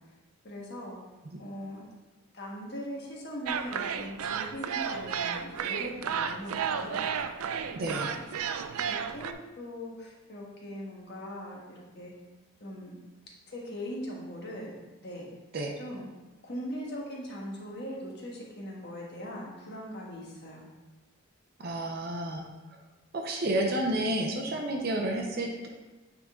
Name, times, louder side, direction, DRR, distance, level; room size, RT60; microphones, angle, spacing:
voice 1, 0.4-1.0 1.4-1.9 2.3-7.1 7.7-8.4 8.9-12.1 12.6-13.0 13.5-15.3 15.8-20.6, equal, 50° left, -2 dB, 1.4 m, -40 dB
sound 1, 3.5-9.3, right 7 dB, 90° right, 0.4 m, -33 dB
voice 2, 7.8-8.1 15.5-15.7 21.6-22.5 23.1-25.7, right 1 dB, 45° right, 1 dB, 0.7 m, -30 dB
8.9 x 3.8 x 3.7 m, 1.2 s
head